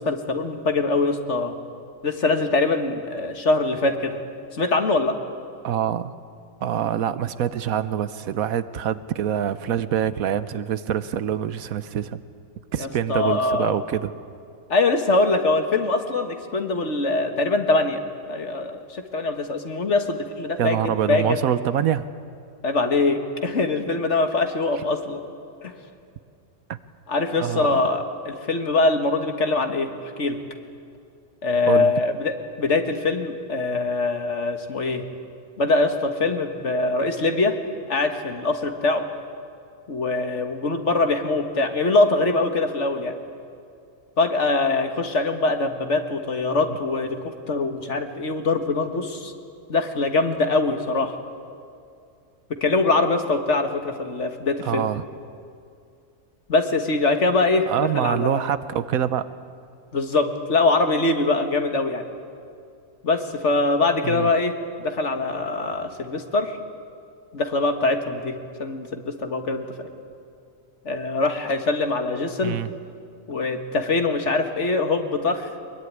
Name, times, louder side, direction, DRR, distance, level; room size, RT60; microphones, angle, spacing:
voice 1, 0.0-1.5 2.0-4.2 4.5-5.2 12.8-13.7 14.7-18.0 18.3-21.4 22.6-25.2 25.6-25.7 27.1-30.4 31.4-35.0 35.6-37.6 37.9-39.0 39.9-43.1 44.2-49.3 49.7-51.2 52.6-54.9 56.5-57.7 57.9-58.5 59.9-62.0 63.0-66.6 67.3-69.9 70.9-72.6 73.3-75.5, left 3 dB, 55° left, 6 dB, 1.9 m, -23 dB
voice 2, 5.6-6.1 6.6-12.2 12.7-14.1 20.6-22.0 26.7-26.8 27.4-27.8 31.7-31.9 54.6-55.0 57.7-59.3 64.0-64.3 72.4-72.7, right 9 dB, 75° right, 13 dB, 1.2 m, -25 dB
23.0 x 22.0 x 9.6 m, 2.4 s
omnidirectional pair, 1.5 m